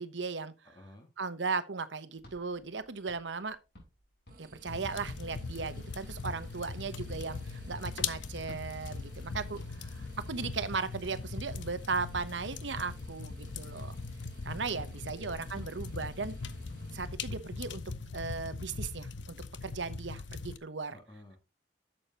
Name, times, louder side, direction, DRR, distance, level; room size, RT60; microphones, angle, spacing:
voice 1, 0.0-0.5 1.2-3.6 4.4-13.9 14.4-16.4 16.9-17.8 18.1-21.0, right 4 dB, 80° right, 1.0 m, -37 dB
voice 2, 0.6-1.1 14.5-15.4 20.9-21.4, left 1 dB, 25° left, 2.0 m, -55 dB
sound 1, 2.1-6.0 8.3-13.2 15.5-18.0, left 1 dB, 60° left, 5.7 m, -57 dB
sound 2, 4.3-17.1, right 1 dB, 50° right, 1.6 m, -57 dB
sound 3, 4.7-20.6, left 4 dB, 85° left, 0.8 m, -40 dB
11.0 x 7.6 x 2.9 m
head